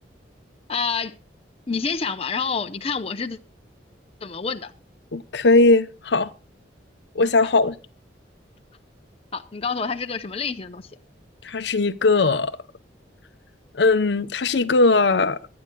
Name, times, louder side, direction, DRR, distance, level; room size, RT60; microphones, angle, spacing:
voice 1, 0.7-1.1 1.7-3.4 4.2-4.7 9.3-10.8, left 5 dB, 35° left, 0.7 m, -27 dB
voice 2, 5.1-6.3 7.1-7.8 11.4-12.5 13.7-15.4, left 3 dB, 70° left, 0.7 m, -19 dB
24.0 x 9.6 x 2.3 m
head